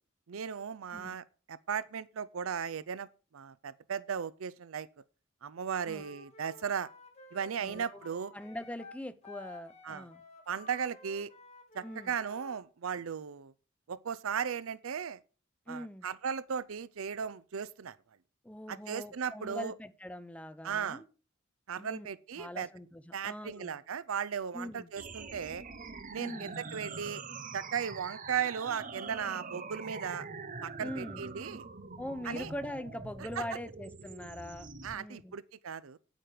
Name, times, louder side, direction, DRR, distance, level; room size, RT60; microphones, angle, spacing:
voice 1, 0.3-3.1 3.3-4.9 5.4-6.9 7.3-8.3 9.8-10.1 10.5-11.3 11.7-13.5 13.9-15.2 15.7-18.0 18.7-19.7 20.6-21.0 21.7-22.7 23.1-25.6 26.1-27.2 27.5-30.3 30.6-31.6 32.2-32.5 33.4-33.5 34.8-36.0, right 7 dB, 85° right, 0.5 m, -36 dB
Wind instrument woodwind instrument, 5.9-12.6, left 2 dB, 35° left, 2.5 m, -53 dB
voice 2, 7.6-8.0 8.3-10.2 11.8-12.1 15.7-16.1 18.4-21.1 21.8-22.1 22.4-23.8 24.5-24.9 26.2-26.6 29.5-29.6 30.8-31.2 32.0-35.4, left 1 dB, 5° left, 0.7 m, -42 dB
sound 1, 25.0-35.0, right 4 dB, 40° right, 1.0 m, -44 dB
9.3 x 9.0 x 5.0 m
head